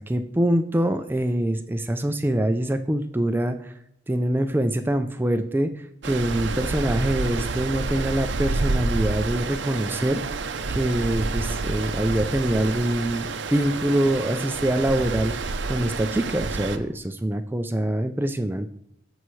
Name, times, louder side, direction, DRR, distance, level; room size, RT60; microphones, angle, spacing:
voice 1, 0.1-3.7 4.1-10.2 10.7-15.3 15.7-18.7, right 1 dB, 10° right, 8 dB, 0.3 m, -24 dB
Stream, 6.0-16.8, right 3 dB, 65° right, 0.6 m, -29 dB
14.0 x 5.6 x 3.2 m, 0.74 s
head